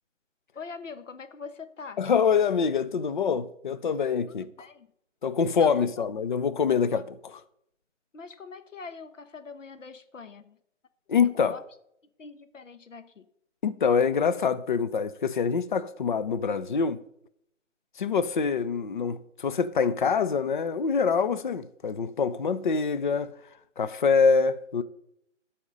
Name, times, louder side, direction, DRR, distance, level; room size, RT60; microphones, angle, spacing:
voice 1, 0.5-2.0 4.6-4.9 5.4-6.1 6.9-7.0 8.1-10.6 11.2-11.6 12.2-13.3, left 4 dB, 75° left, 1.1 m, -43 dB
voice 2, 2.0-4.5 5.2-7.4 11.1-11.6 13.6-17.0 18.0-23.3 23.8-24.8, left 5 dB, 40° left, 0.5 m, -25 dB
12.0 x 4.3 x 5.2 m
figure-of-eight pair, 150°, 38 cm